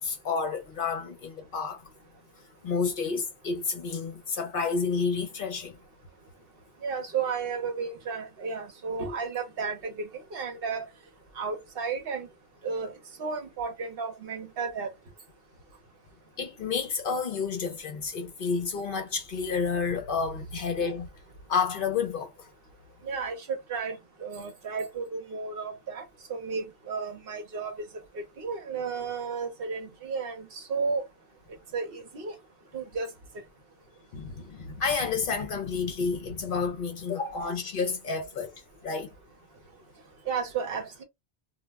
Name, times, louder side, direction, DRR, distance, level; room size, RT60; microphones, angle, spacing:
voice 1, 0.0-1.8 2.6-5.8 16.4-21.1 21.5-22.5 34.1-38.5 38.8-39.1, left 5 dB, 60° left, 0.7 m, -30 dB
voice 2, 6.8-10.9 11.4-12.3 12.6-12.9 13.2-14.9 23.0-26.0 26.3-27.8 28.1-31.0 31.7-32.3 32.7-33.1 40.3-41.0, right 5 dB, 60° right, 0.9 m, -33 dB
2.3 x 2.1 x 3.3 m
omnidirectional pair, 1.1 m